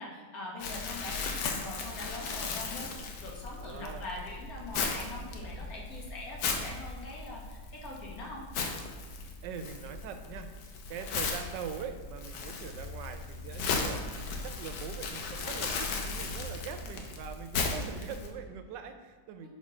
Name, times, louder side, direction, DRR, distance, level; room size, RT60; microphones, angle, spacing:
voice 1, 0.0-8.4 19.4-19.5, left 2 dB, 60° left, -2 dB, 1.6 m, -43 dB
Crumpling crinkling, 0.6-18.3, left 4 dB, 80° left, 1.3 m, -36 dB
voice 2, 3.5-4.1 9.4-19.5, right 7 dB, 90° right, 8 dB, 1.2 m, -42 dB
6.1 x 3.8 x 4.2 m, 1.5 s
omnidirectional pair, 1.8 m